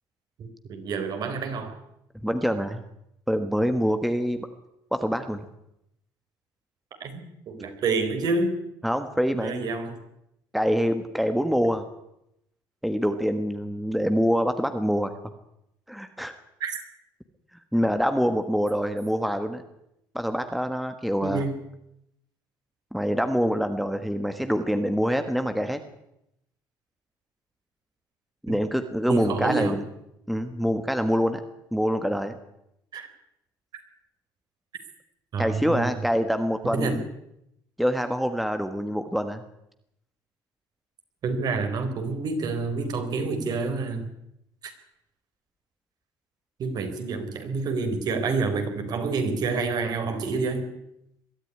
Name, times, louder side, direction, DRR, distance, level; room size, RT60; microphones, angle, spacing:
voice 1, 0.4-1.8 7.0-8.6 9.3-10.0 16.6-16.8 21.2-21.5 28.5-28.6 29.1-29.8 32.9-33.1 35.3-35.9 36.7-37.0 41.2-44.1 44.6-44.7 46.6-50.7, right 4 dB, 50° right, 7 dB, 3.9 m, -28 dB
voice 2, 2.1-2.8 3.3-4.5 4.9-5.4 8.8-9.7 10.5-11.8 12.8-15.1 15.9-16.4 17.7-19.6 20.1-21.4 22.9-25.8 28.4-29.8 30.3-31.4 31.7-32.4 35.4-37.0 37.8-39.4, equal, ahead, 8 dB, 1.4 m, -25 dB
22.0 x 13.0 x 9.8 m, 0.82 s
cardioid pair, 130°, 8 cm